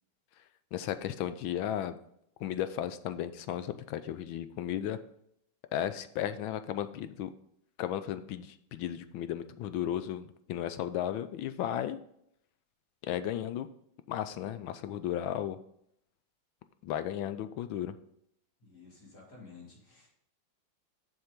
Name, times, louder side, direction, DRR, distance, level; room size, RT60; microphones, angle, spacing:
voice 1, 0.7-2.0 2.4-5.0 5.7-7.3 7.8-12.0 13.0-13.7 14.1-15.6 16.8-17.9, left 11 dB, 85° left, 11 dB, 1.5 m, -34 dB
voice 2, 18.6-20.1, left 4 dB, 50° left, -2 dB, 3.4 m, -53 dB
7.4 x 6.4 x 5.1 m, 0.72 s
omnidirectional pair, 2.2 m